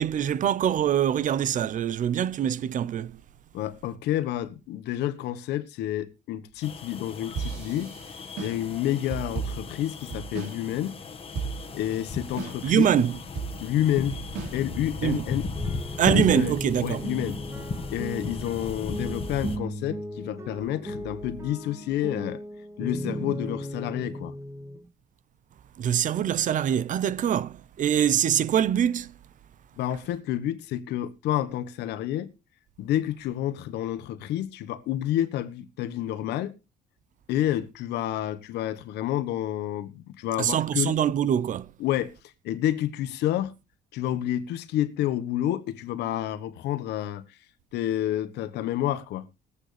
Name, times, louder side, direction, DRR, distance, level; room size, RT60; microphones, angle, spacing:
voice 1, 0.0-3.1 12.6-13.2 15.0-15.2 16.0-17.0 25.8-29.1 40.4-41.7, right 9 dB, 50° right, 0.7 m, -24 dB
voice 2, 3.5-7.9 8.4-11.0 11.7-12.9 13.6-14.2 14.5-15.4 16.1-17.4 17.9-22.4 22.8-24.3 29.8-32.3 32.8-36.6 37.3-41.0 41.8-42.1 42.4-43.5 43.9-47.2 47.7-49.3, left 12 dB, 80° left, 1.3 m, -29 dB
sound 1, 6.6-19.6, left 4 dB, 35° left, 1.6 m, -36 dB
sound 2, 7.4-10.6 10.9-11.0 11.3-11.9 12.4-12.9 13.4-15.1, right 5 dB, 80° right, 3.3 m, -35 dB
sound 3, 15.5-24.9, equal, 15° right, 2.7 m, -36 dB
20.0 x 8.4 x 3.4 m
cardioid pair, 110°, 17 cm